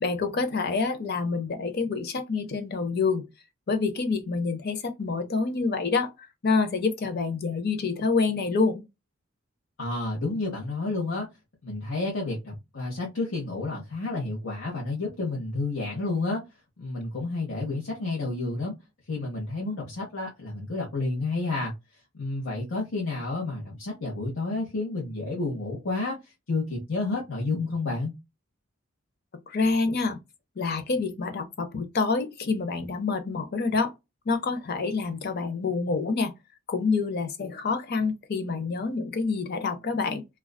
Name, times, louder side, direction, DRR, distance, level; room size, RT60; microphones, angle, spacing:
voice 1, 0.0-3.3 3.7-6.1 6.4-8.9 29.5-30.2 30.6-33.9 34.3-36.3 36.7-40.2, left 4 dB, 50° left, 0.6 m, -27 dB
voice 2, 9.8-11.3 11.6-16.4 16.8-18.7 19.1-21.7 22.1-26.2 26.5-28.1, left 3 dB, 85° left, 0.9 m, -30 dB
2.4 x 2.3 x 2.2 m
head